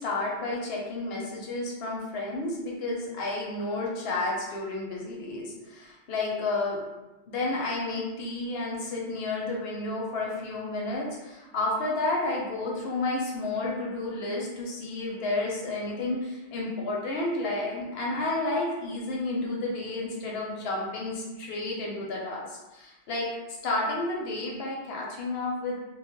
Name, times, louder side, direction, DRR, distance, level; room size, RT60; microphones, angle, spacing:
voice 1, 0.0-6.8 7.3-23.3 23.6-25.7, left 2 dB, 65° left, -3 dB, 0.8 m, -31 dB
2.2 x 2.1 x 2.9 m, 1.1 s
omnidirectional pair, 1.1 m